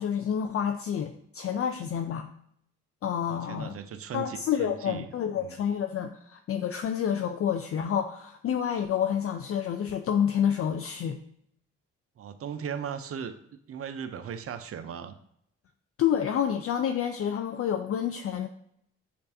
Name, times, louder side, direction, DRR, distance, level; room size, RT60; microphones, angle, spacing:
voice 1, 0.0-2.3 3.0-3.8 4.1-11.2 16.0-18.5, left 8 dB, 45° left, 6 dB, 0.4 m, -28 dB
voice 2, 3.3-5.6 12.2-15.1, right 7 dB, 45° right, 10 dB, 0.5 m, -38 dB
6.7 x 2.5 x 2.6 m, 0.72 s
hypercardioid pair, 45°, 34 cm